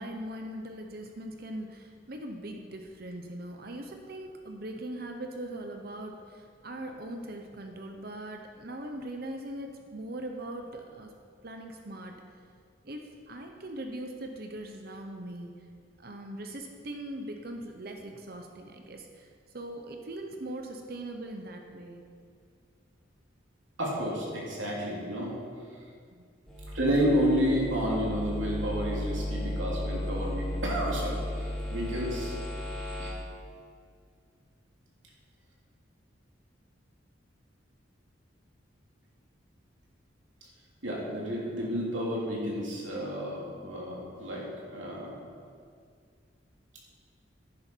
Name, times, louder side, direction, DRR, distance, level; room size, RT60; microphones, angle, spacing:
voice 1, 0.0-11.1 11.4-12.2 12.8-15.7 16.0-22.0 26.1-26.3, right 1 dB, 55° right, 3 dB, 0.9 m, -40 dB
voice 2, 23.8-25.4 26.7-32.3 33.0-33.1 40.8-45.2, equal, 90° right, -4 dB, 2.9 m, -30 dB
sound 1, 26.5-33.1, left 1 dB, 5° left, 2.8 m, -34 dB
11.0 x 10.5 x 4.6 m, 2.1 s
head